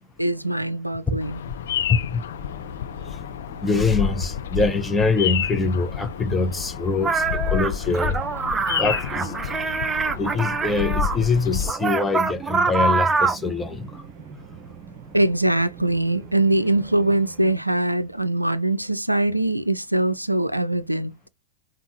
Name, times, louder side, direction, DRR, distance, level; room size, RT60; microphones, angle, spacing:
voice 1, 0.0-1.4 15.1-21.1, right 1 dB, 90° right, 0.4 m, -22 dB
Bird vocalization bird call bird song, 1.2-11.7, left 9 dB, 60° left, 0.3 m, -29 dB
voice 2, 1.9-2.2 3.6-8.2 8.8-9.5 10.2-14.0, left 3 dB, 10° left, 0.8 m, -24 dB
sound 1, 2.3-17.5, right 6 dB, 40° right, 0.9 m, -45 dB
sound 2, 7.0-11.2 11.6-13.5, right 4 dB, 15° right, 0.4 m, -24 dB
5.3 x 2.3 x 3.0 m
figure-of-eight pair, 90°, 0 cm